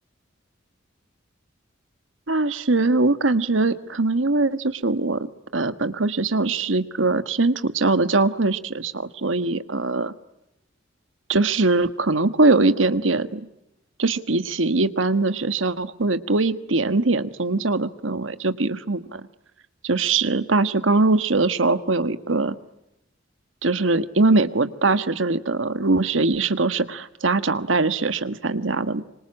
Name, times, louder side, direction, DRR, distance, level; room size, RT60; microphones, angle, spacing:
voice 1, 2.3-5.3 5.5-10.1 11.3-13.5 14.0-19.3 19.8-22.6 23.6-29.0, right 3 dB, 85° right, 12 dB, 1.5 m, -22 dB
26.0 x 25.0 x 8.8 m, 0.91 s
head